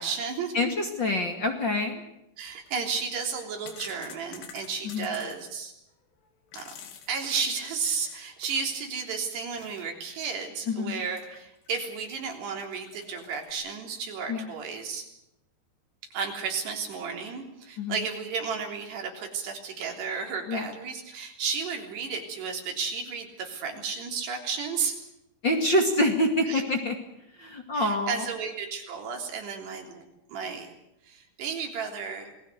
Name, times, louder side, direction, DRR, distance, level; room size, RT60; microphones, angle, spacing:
voice 1, 0.0-0.6 2.4-5.7 6.5-6.7 7.1-15.1 16.1-25.0 26.5-26.6 27.7-30.7 31.0-32.3, right 5 dB, 85° right, 2 dB, 5.6 m, -33 dB
voice 2, 0.5-2.0 4.8-5.1 10.7-11.0 14.3-14.5 17.8-17.9 20.5-20.6 25.4-26.9 27.4-28.2, left 1 dB, 35° left, 3 dB, 2.2 m, -26 dB
sound 1, 2.5-2.7 3.3-5.4 6.2-8.3 8.7-8.8 9.6-9.9 10.1-10.2 11.1-11.7 12.1-12.2 12.7-13.5, left 8 dB, 85° left, 4.5 m, -48 dB
28.0 x 20.0 x 6.8 m, 0.85 s
omnidirectional pair, 4.7 m